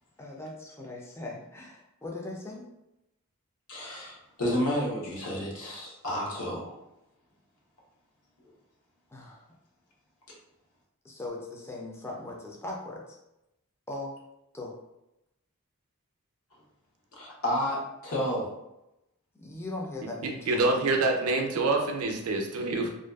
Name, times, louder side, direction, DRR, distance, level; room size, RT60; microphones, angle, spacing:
voice 1, 0.2-2.6 9.1-9.4 11.0-13.2 13.9-14.1 14.5-14.8 19.4-21.0, left 2 dB, 10° left, -2 dB, 0.3 m, -39 dB
voice 2, 3.7-6.7 8.4-8.5 17.2-18.5, equal, 70° left, -4 dB, 0.8 m, -31 dB
voice 3, 20.2-22.9, right 3 dB, 70° right, 3 dB, 0.4 m, -26 dB
2.5 x 2.2 x 2.3 m, 0.89 s
head